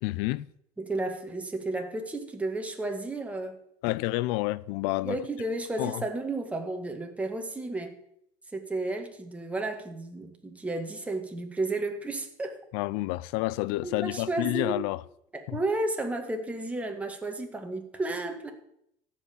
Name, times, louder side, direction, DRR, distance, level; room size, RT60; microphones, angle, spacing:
voice 1, 0.0-0.5 3.8-5.2 5.8-6.0 12.7-15.0 15.5-15.6, left 19 dB, 75° left, 0.5 m, -29 dB
voice 2, 0.8-3.6 5.0-7.9 8.5-12.6 13.8-14.8 15.3-18.5, right 2 dB, 10° right, 1.9 m, -32 dB
14.0 x 5.8 x 8.5 m
supercardioid pair, 115°, 12 cm